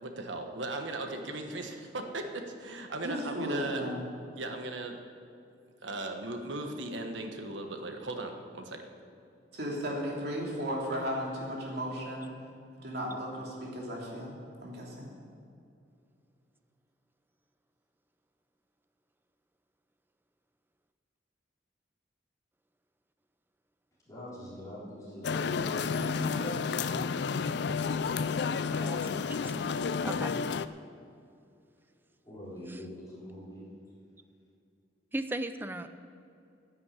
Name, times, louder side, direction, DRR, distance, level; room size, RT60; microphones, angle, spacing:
voice 1, 0.0-3.8 4.4-5.0 5.8-8.9, right 2 dB, 80° right, 5 dB, 1.4 m, -37 dB
voice 2, 3.0-4.0 9.5-12.3 12.8-14.3 14.6-15.1, equal, 60° right, -3 dB, 3.1 m, -35 dB
voice 3, 24.1-26.8 32.2-33.7, equal, 20° left, -8 dB, 4.0 m, -42 dB
sound 1, 25.2-30.7, left 5 dB, 60° left, 0.4 m, -31 dB
voice 4, 28.7-30.4 32.7-32.8 35.1-35.9, right 1 dB, 10° right, 10 dB, 0.5 m, -38 dB
11.0 x 9.6 x 8.3 m, 2.5 s
head